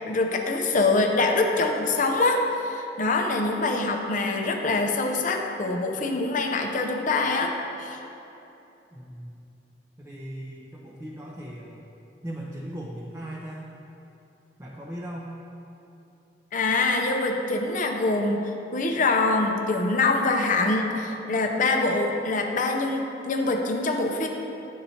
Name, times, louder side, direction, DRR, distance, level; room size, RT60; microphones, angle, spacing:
voice 1, 0.1-8.0 16.5-24.3, left 3 dB, 45° left, 3 dB, 0.6 m, -24 dB
voice 2, 8.9-9.4 10.0-11.8 12.2-13.7 14.6-15.3, right 1 dB, 15° right, -4 dB, 0.5 m, -38 dB
11.0 x 4.3 x 2.8 m, 2.9 s
head